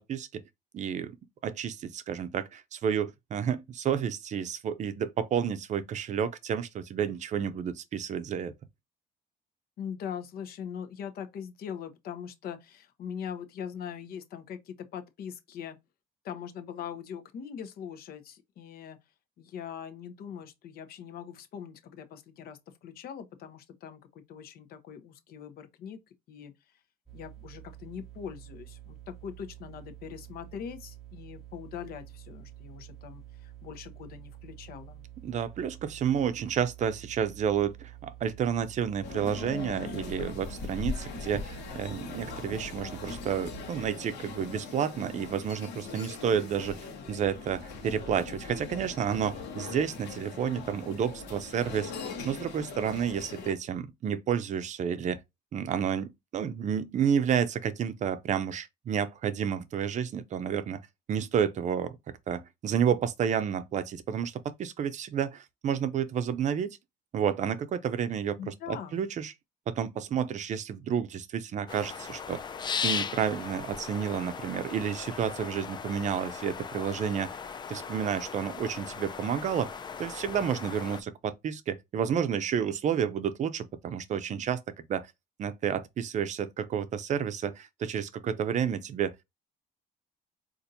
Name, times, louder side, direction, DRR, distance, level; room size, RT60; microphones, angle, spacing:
voice 1, 0.1-0.4 0.7-1.2 1.4-8.5 35.2-46.8 47.1-51.9 52.2-55.2 55.5-60.8 61.1-62.0 62.3-66.8 67.1-69.3 69.7-72.4 72.8-77.4 77.7-84.6 84.9-85.1 85.4-89.2, right 8 dB, 45° right, 0.5 m, -30 dB
voice 2, 9.8-15.8 16.2-19.0 19.4-26.0 26.3-26.5 27.1-35.1 68.4-69.1, left 8 dB, 65° left, 0.7 m, -42 dB
sound 1, 27.1-43.7, right 13 dB, 5° left, 0.8 m, -49 dB
sound 2, 39.0-53.5, left 4 dB, 85° left, 1.0 m, -40 dB
sound 3, 71.7-81.0, left 6 dB, 25° left, 0.4 m, -37 dB
4.2 x 2.5 x 2.6 m
cardioid pair, 110°, 17 cm